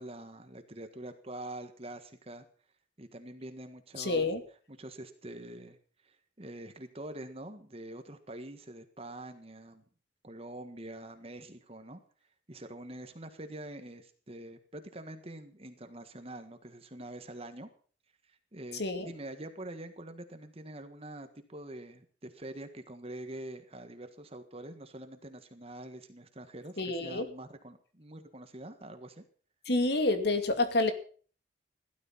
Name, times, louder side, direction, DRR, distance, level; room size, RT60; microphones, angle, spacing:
voice 1, 0.0-2.4 3.0-4.3 4.7-5.8 6.0-9.8 10.2-12.0 12.5-17.7 18.3-29.2, right 1 dB, 30° right, 8 dB, 1.6 m, -45 dB
voice 2, 4.0-4.4 18.7-19.1 26.8-27.3 29.7-30.9, left 2 dB, 60° left, 8 dB, 2.5 m, -28 dB
16.5 x 12.5 x 5.7 m, 0.43 s
head